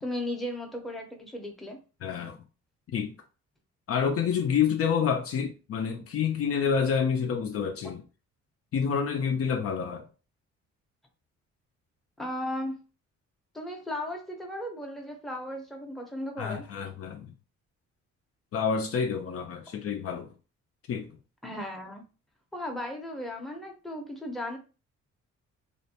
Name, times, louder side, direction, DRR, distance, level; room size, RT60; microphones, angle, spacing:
voice 1, 0.0-1.8 12.2-12.8 13.5-16.6 21.4-22.0 22.5-24.6, left 1 dB, ahead, 0.6 m, -36 dB
voice 2, 2.0-2.4 2.9-3.1 3.9-8.0 8.7-10.1 16.4-17.3 18.5-20.3 20.9-21.1, left 6 dB, 50° left, 0.4 m, -28 dB
2.5 x 2.1 x 2.7 m
cardioid pair, 90°, 30 cm